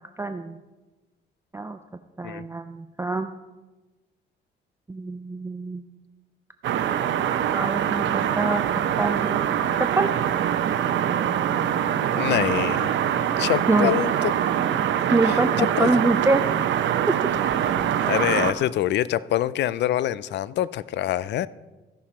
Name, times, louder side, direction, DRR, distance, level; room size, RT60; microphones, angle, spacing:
voice 1, 0.2-0.6 1.5-1.8 2.2-3.3 4.9-5.8 7.5-8.6 9.0-9.4 9.8-10.1 13.7-13.9 15.1-16.4, right 3 dB, 15° right, 0.4 m, -25 dB
sound 1, 6.6-18.5, right 9 dB, 70° right, 0.7 m, -24 dB
voice 2, 12.1-12.9 13.4-14.3 15.3-15.9 18.0-21.5, left 12 dB, 60° left, 0.4 m, -25 dB
15.0 x 5.8 x 4.3 m
cardioid pair, 90°, 20 cm